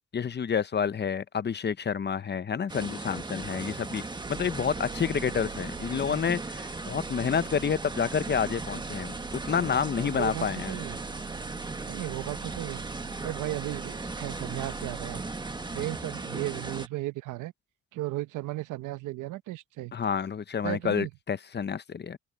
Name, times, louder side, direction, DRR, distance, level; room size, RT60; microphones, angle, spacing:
voice 1, 0.0-4.0 4.3-9.1 9.5-10.7 19.9-22.2, left 7 dB, 35° left, 0.8 m, -29 dB
sound 1, 2.7-16.9, right 2 dB, 15° right, 1.5 m, -37 dB
sound 2, 3.2-15.9, right 10 dB, 65° right, 3.3 m, -46 dB
voice 2, 10.0-11.0 11.9-12.8 13.2-15.2 15.7-17.5 17.9-19.9 20.6-21.1, right 16 dB, 90° right, 0.9 m, -35 dB
open air
cardioid pair, 90°, 30 cm